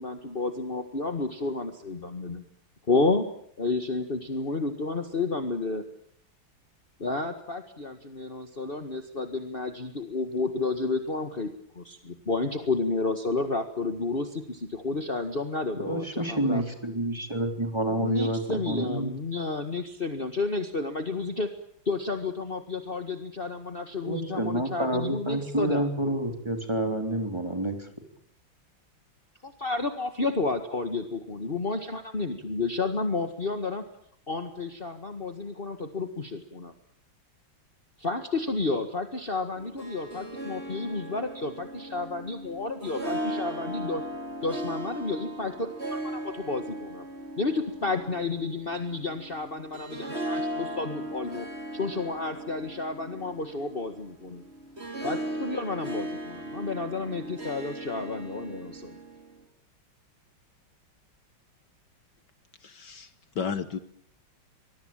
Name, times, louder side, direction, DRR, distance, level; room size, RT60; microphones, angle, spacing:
voice 1, 0.0-2.4 2.9-3.3 3.6-5.8 7.0-11.5 11.7-16.6 17.9-21.5 21.9-25.9 29.4-33.8 34.3-36.7 38.0-44.0 44.4-47.0 47.4-51.5 51.7-54.4 55.0-58.9, left 3 dB, 30° left, 7 dB, 1.9 m, -31 dB
voice 2, 15.9-19.2 24.0-27.9, right 1 dB, 15° right, 5 dB, 3.6 m, -29 dB
Harp, 39.6-59.4, right 1 dB, 30° right, 4.3 m, -37 dB
voice 3, 62.6-63.1 63.4-63.8, left 6 dB, 60° left, 12 dB, 1.9 m, -32 dB
25.0 x 21.5 x 8.9 m, 0.66 s
omnidirectional pair, 2.2 m